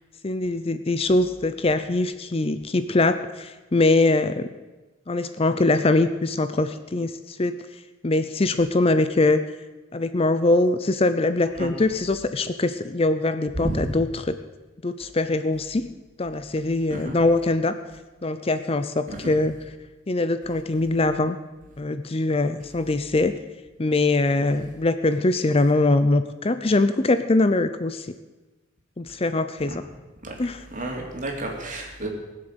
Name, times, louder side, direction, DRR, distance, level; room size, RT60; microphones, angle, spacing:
voice 1, 0.2-4.5 5.1-7.6 8.0-9.4 9.9-14.4 14.8-15.9 16.2-17.7 18.2-19.5 20.1-21.4 21.8-23.4 23.8-28.1 29.0-29.8 30.4-30.6, left 2 dB, 30° left, 10 dB, 0.6 m, -22 dB
voice 2, 13.5-13.8 16.9-17.2 19.1-19.3 29.7-29.8 30.2-30.3 30.7-32.1, right 1 dB, 40° right, 0 dB, 3.4 m, -31 dB
20.0 x 7.8 x 8.1 m, 1.2 s
head